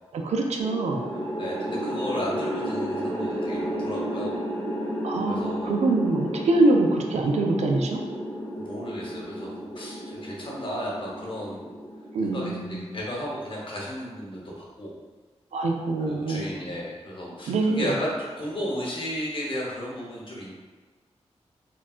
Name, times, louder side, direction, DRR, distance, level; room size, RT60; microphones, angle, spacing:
voice 1, 0.1-1.0 5.0-8.0 12.1-12.8 15.5-16.5 17.5-17.9, right 2 dB, 75° right, 2 dB, 0.4 m, -24 dB
sound 1, 0.6-12.9, equal, 15° left, 0.7 m, -32 dB
voice 2, 1.4-4.3 5.3-5.8 8.3-11.7 12.2-15.0 16.1-20.5, equal, 50° left, -4 dB, 0.9 m, -34 dB
3.4 x 2.2 x 2.4 m, 1.3 s
cardioid pair, 45°, 11 cm